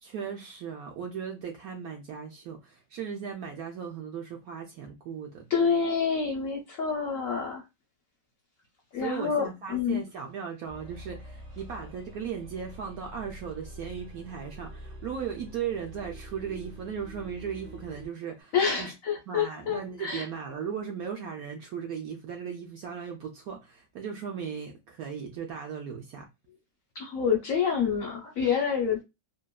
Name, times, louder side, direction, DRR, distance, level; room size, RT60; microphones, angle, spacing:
voice 1, 0.0-5.5 9.0-18.9 19.3-26.3, right 7 dB, 70° right, 0.9 m, -37 dB
voice 2, 5.5-7.6 8.9-10.0 18.5-20.3 26.9-29.0, left 6 dB, 65° left, 0.8 m, -27 dB
sound 1, 10.7-18.2, right 1 dB, 30° right, 0.8 m, -46 dB
2.8 x 2.5 x 2.2 m
omnidirectional pair, 2.0 m